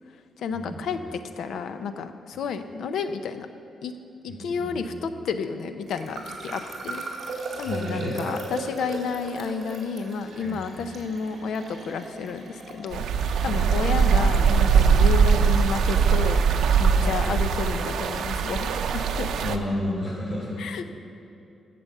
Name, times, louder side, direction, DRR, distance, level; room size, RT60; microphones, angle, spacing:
voice 1, 0.4-3.5 3.8-3.9 4.2-7.0 7.6-13.0 13.4-16.4 16.8-19.3 20.6-20.9, left 5 dB, 70° left, 9 dB, 0.7 m, -31 dB
sound 1, 5.9-16.7, right 3 dB, 50° right, 2.4 m, -38 dB
voice 2, 7.6-8.2 10.4-10.6 13.4-13.7 17.0-17.1 19.4-20.6, left 1 dB, 25° left, -5 dB, 3.5 m, -31 dB
sound 2, 12.9-19.6, right 6 dB, 90° right, 0.6 m, -21 dB
12.5 x 7.7 x 6.7 m, 2.5 s
wide cardioid pair, 165°, 0 cm